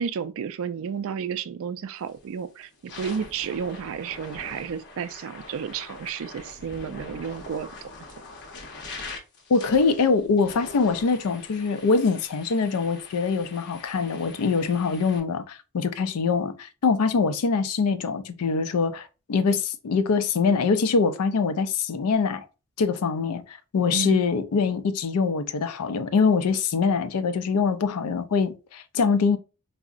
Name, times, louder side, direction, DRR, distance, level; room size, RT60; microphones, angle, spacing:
voice 1, 0.0-7.7 23.9-24.2, right 7 dB, 65° right, 0.3 m, -32 dB
sound 1, 2.0-2.3 2.7-15.2, left 3 dB, 55° left, 0.7 m, -43 dB
voice 2, 9.5-22.4 22.8-29.4, left 5 dB, 85° left, 0.4 m, -24 dB
3.6 x 2.0 x 2.4 m
head